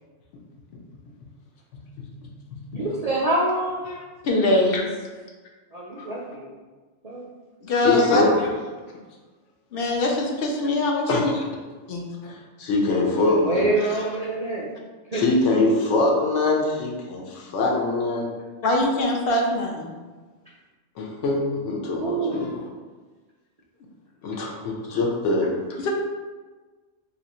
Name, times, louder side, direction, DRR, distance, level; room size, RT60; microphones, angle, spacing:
voice 1, 1.7-2.1 2.5-2.6 3.9-4.0 6.0-6.1 7.8-8.5 11.1-11.4 12.2-14.0 15.1-18.3 21.0-22.5 24.2-25.6, left 2 dB, 80° left, -1 dB, 1.0 m, -24 dB
voice 2, 2.7-3.9 5.7-6.5 7.0-7.3 12.9-14.7 15.1-15.7 22.0-22.5, right 2 dB, 60° right, -5 dB, 0.4 m, -26 dB
voice 3, 4.2-4.9 7.6-8.2 9.7-11.3 11.9-12.1 18.6-19.9 25.8-25.9, left 2 dB, 60° left, 0 dB, 0.7 m, -22 dB
2.7 x 2.4 x 4.1 m, 1.3 s
omnidirectional pair, 1.2 m